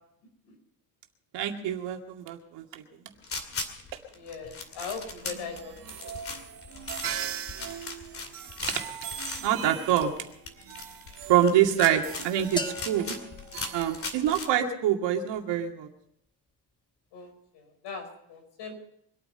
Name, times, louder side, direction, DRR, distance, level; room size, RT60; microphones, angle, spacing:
voice 1, 1.3-2.8 9.4-10.1 11.3-13.2 13.7-15.9, right 10 dB, 75° right, 3 dB, 2.4 m, -25 dB
sound 1, 3.2-14.5, left 3 dB, 30° left, 2.4 m, -39 dB
voice 2, 4.1-6.1 11.5-11.7 17.1-18.8, left 5 dB, 75° left, 4 dB, 5.2 m, -40 dB
sound 2, 5.2-14.7, right 9 dB, 50° right, 1.8 m, -41 dB
sound 3, 12.6-14.5, left 3 dB, 10° left, 0.8 m, -39 dB
24.5 x 9.2 x 5.6 m, 0.72 s
cardioid pair, 145°, 43 cm